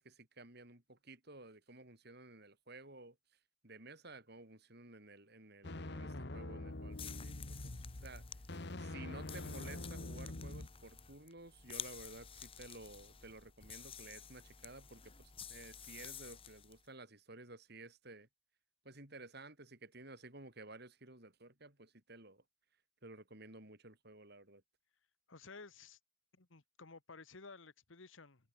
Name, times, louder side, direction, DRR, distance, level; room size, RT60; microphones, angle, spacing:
voice 1, 0.0-3.2 3.6-8.2 8.8-18.3 18.8-22.4 23.0-24.6, right 2 dB, 50° right, 4.4 m, -54 dB
sound 1, 5.6-10.7, left 2 dB, 55° left, 1.4 m, -45 dB
sound 2, 6.9-16.8, left 8 dB, 25° left, 1.6 m, -52 dB
voice 2, 25.3-26.0 26.3-28.5, left 4 dB, 70° left, 1.5 m, -55 dB
head